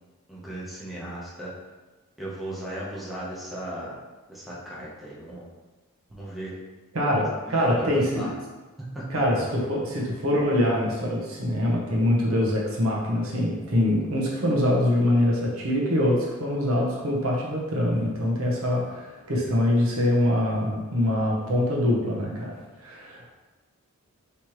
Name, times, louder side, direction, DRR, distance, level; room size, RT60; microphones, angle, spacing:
voice 1, 0.3-1.5 2.2-4.0 4.3-5.4 6.1-6.6 7.6-8.3 8.9-9.0, right 1 dB, ahead, -7 dB, 1.0 m, -36 dB
voice 2, 6.9-8.3 9.1-22.5 22.8-23.3, left 1 dB, 85° right, -3 dB, 1.0 m, -24 dB
4.3 x 3.3 x 3.1 m, 1.2 s
head